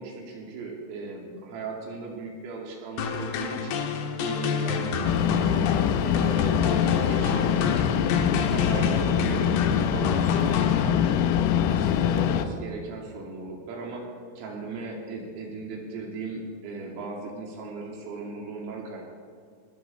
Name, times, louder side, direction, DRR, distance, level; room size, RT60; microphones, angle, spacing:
voice 1, 0.0-3.8 4.2-8.1 8.5-11.4 11.7-14.0 14.4-19.1, right 3 dB, 85° right, -1 dB, 5.3 m, -37 dB
sound 1, 3.0-11.3, left 5 dB, 70° left, 2.8 m, -30 dB
sound 2, 5.0-12.5, left 9 dB, 85° left, 3.4 m, -24 dB
20.5 x 14.0 x 4.3 m, 2.2 s
omnidirectional pair, 5.7 m